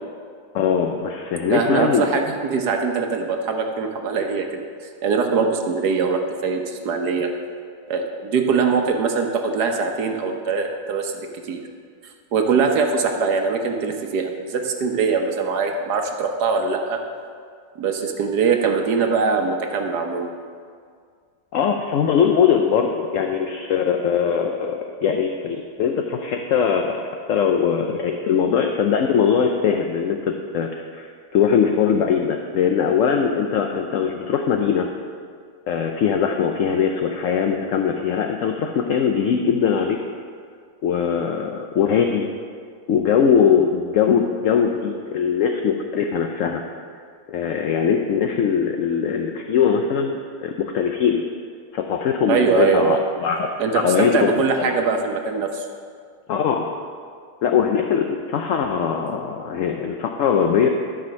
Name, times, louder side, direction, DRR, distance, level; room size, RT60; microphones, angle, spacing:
voice 1, 0.5-2.1 21.5-27.0 27.3-31.1 31.3-34.9 35.7-40.0 40.8-42.3 42.9-46.6 47.3-51.2 51.7-54.3 54.6-54.7 56.3-56.7 57.4-60.7, left 7 dB, 65° left, 3 dB, 0.8 m, -21 dB
voice 2, 1.5-4.6 5.0-7.3 7.9-11.1 11.5-11.6 12.3-17.0 17.8-20.3 52.3-53.0 53.6-55.6, right 5 dB, 70° right, 3 dB, 1.4 m, -22 dB
12.5 x 5.0 x 6.3 m, 2.1 s
omnidirectional pair, 1.8 m